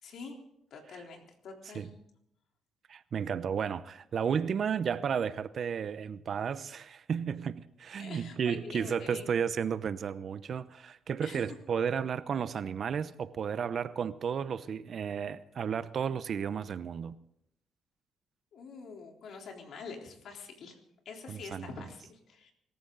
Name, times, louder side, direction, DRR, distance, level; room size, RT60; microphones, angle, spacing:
voice 1, 0.0-0.4 0.7-1.9 8.0-9.3 11.2-11.4 18.5-20.8 21.1-22.5, left 4 dB, 70° left, 3.8 m, -45 dB
voice 2, 2.9-17.2 21.3-21.7, right 7 dB, 55° right, 0.8 m, -33 dB
24.5 x 14.5 x 4.0 m
cardioid pair, 90°, 0 cm